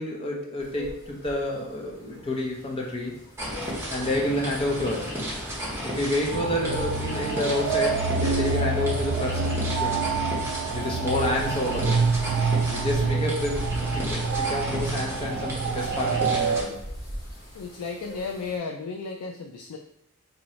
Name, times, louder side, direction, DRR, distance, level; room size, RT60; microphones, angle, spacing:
voice 1, 0.0-3.1 3.9-5.1 5.8-9.5 9.8-10.1 10.7-12.0 12.7-16.8, left 1 dB, 25° left, -2 dB, 0.8 m, -29 dB
sound 1, 0.6-18.6, left 1 dB, 50° left, 1.1 m, -43 dB
sound 2, 3.4-16.6, equal, 10° right, 1.0 m, -34 dB
sound 3, 6.3-16.6, right 4 dB, 70° right, 0.3 m, -27 dB
voice 2, 10.7-11.2 12.5-12.8 17.5-19.8, left 4 dB, 80° left, 3 dB, 0.4 m, -35 dB
3.0 x 2.7 x 4.2 m, 0.70 s
head